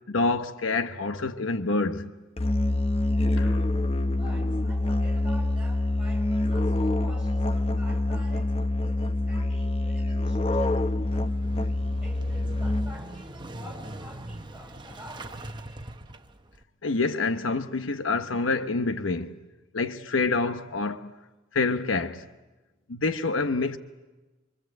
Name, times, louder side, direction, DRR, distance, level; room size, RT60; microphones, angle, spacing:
voice 1, 0.1-2.1 3.4-3.7 16.8-19.4 19.7-21.1 21.5-22.2 22.9-23.8, left 3 dB, 90° left, 1.0 m, -27 dB
Musical instrument, 2.4-13.2, left 1 dB, 30° left, 0.8 m, -26 dB
voice 2, 4.1-11.6 12.0-15.9, equal, 5° right, 5.3 m, -48 dB
Motorcycle / Engine starting, 10.8-16.6, right 1 dB, 25° right, 1.0 m, -42 dB
25.5 x 25.5 x 7.9 m
head